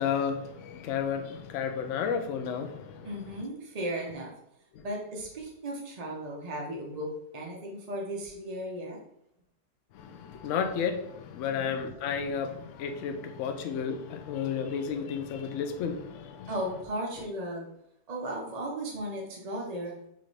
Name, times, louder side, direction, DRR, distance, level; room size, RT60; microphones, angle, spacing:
voice 1, 0.0-3.1 4.7-4.8 9.9-16.5, left 7 dB, 65° left, 0.7 m, -32 dB
voice 2, 3.0-4.3 4.8-9.0 11.5-11.8 16.5-17.6 18.1-20.0, right 1 dB, 55° right, 0.4 m, -36 dB
5.8 x 2.5 x 3.1 m
omnidirectional pair, 1.8 m